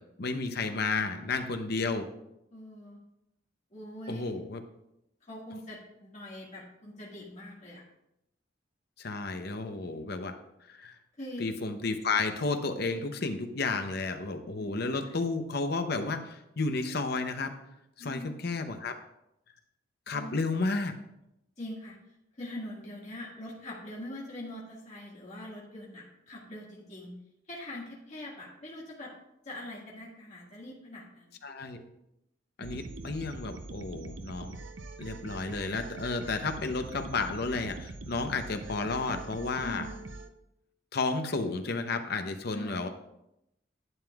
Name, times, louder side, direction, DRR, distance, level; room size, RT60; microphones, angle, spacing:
voice 1, 0.2-2.1 4.1-4.6 9.0-10.3 10.7-11.0 11.4-17.5 18.0-18.9 20.1-20.9 31.4-31.8 32.6-34.6 35.0-39.9 40.9-42.9, left 3 dB, 60° left, 7 dB, 0.8 m, -32 dB
voice 2, 2.5-3.0 3.7-4.4 5.2-7.8 11.2-11.4 14.6-15.2 18.0-18.4 20.1-20.4 21.6-27.2 27.5-29.1 29.4-31.3 39.6-40.1 42.5-42.9, left 1 dB, 40° left, -5 dB, 1.9 m, -43 dB
sound 1, 32.6-40.3, right 3 dB, 90° right, 0.6 m, -43 dB
11.0 x 8.9 x 2.4 m, 0.84 s
head